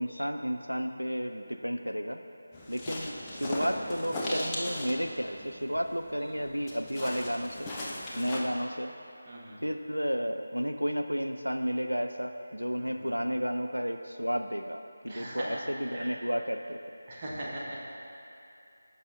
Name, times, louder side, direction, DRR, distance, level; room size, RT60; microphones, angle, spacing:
voice 1, 0.0-2.2 2.7-7.7 8.2-8.9 9.6-16.8, equal, 90° right, 6 dB, 0.3 m, -32 dB
sound 1, 2.5-8.4, left 1 dB, 10° left, 0.6 m, -38 dB
voice 2, 8.1-8.4 9.3-9.6 12.7-13.3 15.1-15.6 15.9-16.2 17.1-17.9, right 1 dB, 25° right, -6 dB, 1.1 m, -41 dB
13.0 x 5.5 x 2.5 m, 2.7 s
figure-of-eight pair, 160°, 0 cm